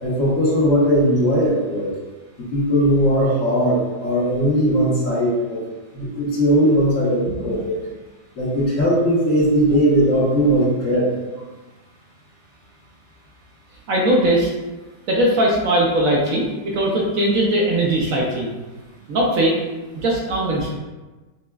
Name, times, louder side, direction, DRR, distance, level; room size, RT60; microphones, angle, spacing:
voice 1, 0.0-2.0 2.4-5.6 5.9-7.8 8.4-11.1, equal, 55° left, -7 dB, 1.3 m, -18 dB
voice 2, 13.9-14.5 15.1-18.5 19.1-19.6 19.9-20.7, right 1 dB, 65° right, -3 dB, 0.9 m, -19 dB
5.7 x 2.1 x 2.3 m, 1.2 s
omnidirectional pair, 1.7 m